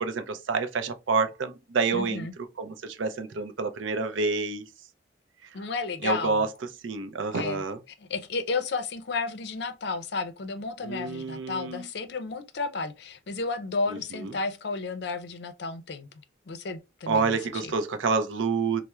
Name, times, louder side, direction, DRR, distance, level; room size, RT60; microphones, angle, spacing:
voice 1, 0.0-2.3 2.6-4.7 6.0-6.5 6.8-7.8 10.8-11.9 13.9-14.3 17.1-18.8, right 4 dB, 85° right, 0.5 m, -28 dB
voice 2, 1.9-2.3 5.5-6.5 7.3-7.6 8.0-16.1 16.5-17.4 17.6-17.7, left 3 dB, 60° left, 0.5 m, -32 dB
4.2 x 2.0 x 2.3 m
head